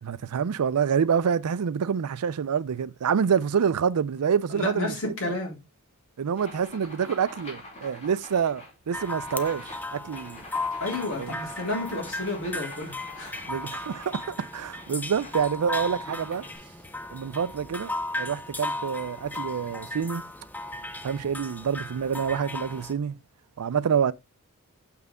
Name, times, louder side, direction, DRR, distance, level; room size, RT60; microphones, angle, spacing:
voice 1, 0.0-5.1 6.2-10.4 11.2-11.3 13.5-16.4 17.1-20.2 21.0-23.1 23.6-24.1, right 7 dB, 85° right, 0.4 m, -27 dB
voice 2, 4.5-5.6 10.8-13.5, left 2 dB, 60° left, 3.6 m, -31 dB
sound 1, 6.4-16.6, left 1 dB, 30° left, 2.9 m, -46 dB
sound 2, 8.9-22.9, left 2 dB, 10° left, 0.6 m, -36 dB
6.6 x 5.9 x 3.5 m
head